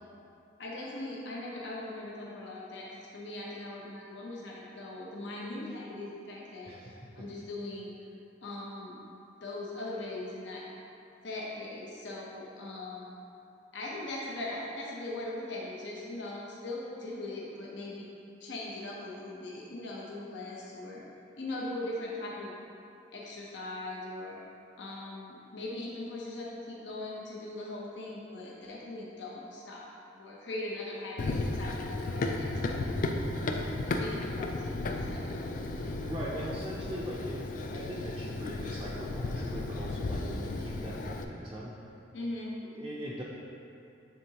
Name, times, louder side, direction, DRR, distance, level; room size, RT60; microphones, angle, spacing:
voice 1, 0.6-6.7 7.2-7.9 8.4-9.0 9.4-10.6 11.2-13.2 13.7-18.1 18.4-21.0 21.4-22.5 23.1-24.4 24.8-29.9 30.1-32.9 33.8-35.4 42.1-42.5, left 2 dB, 65° left, -4 dB, 0.8 m, -40 dB
voice 2, 6.7-7.1 35.7-41.7 42.6-43.2, equal, 20° right, -5 dB, 0.5 m, -41 dB
Run, 31.2-41.2, left 2 dB, 40° left, 0.3 m, -34 dB
9.4 x 3.7 x 2.9 m, 2.7 s
head